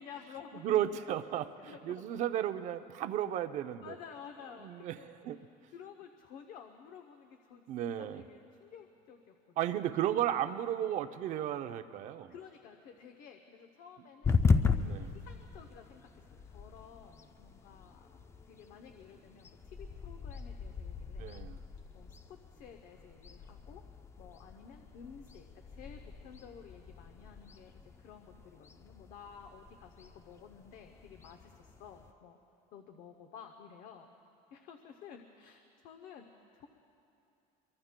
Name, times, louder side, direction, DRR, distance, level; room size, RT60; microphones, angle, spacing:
voice 1, 0.0-0.8 1.6-2.1 3.8-5.1 5.7-9.8 12.3-21.5 21.9-23.8 24.2-32.4 32.7-34.1 34.5-36.7, left 7 dB, 55° left, 5 dB, 0.7 m, -53 dB
voice 2, 0.6-3.9 4.6-5.4 7.7-8.2 9.6-12.3 14.7-15.1 21.2-21.6, right 11 dB, 45° right, 10 dB, 0.5 m, -34 dB
sound 1, 14.2-32.1, left 4 dB, 15° left, 0.4 m, -37 dB
24.5 x 23.5 x 2.2 m, 2.7 s
cardioid pair, 165°, 17 cm